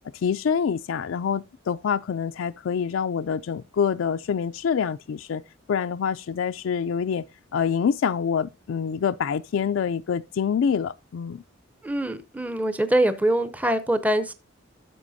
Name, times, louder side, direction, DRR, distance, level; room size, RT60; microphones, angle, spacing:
voice 1, 0.2-5.4 5.7-7.2 7.5-11.4, left 7 dB, 85° left, 0.4 m, -26 dB
voice 2, 11.8-14.3, right 1 dB, 10° right, 0.5 m, -23 dB
12.5 x 6.9 x 2.6 m
head